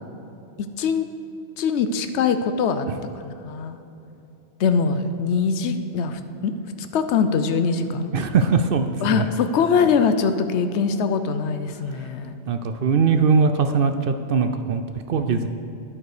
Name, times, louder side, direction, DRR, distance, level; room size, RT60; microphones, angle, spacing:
voice 1, 0.6-1.0 1.6-2.9 3.2-3.8 4.6-6.5 6.8-8.1 9.0-12.3 15.3-15.5, left 5 dB, 75° left, 9 dB, 0.9 m, -22 dB
voice 2, 8.1-9.2 12.0-12.1 12.5-15.5, right 5 dB, 60° right, 8 dB, 0.6 m, -21 dB
10.5 x 8.7 x 4.9 m, 2.9 s
omnidirectional pair, 1.2 m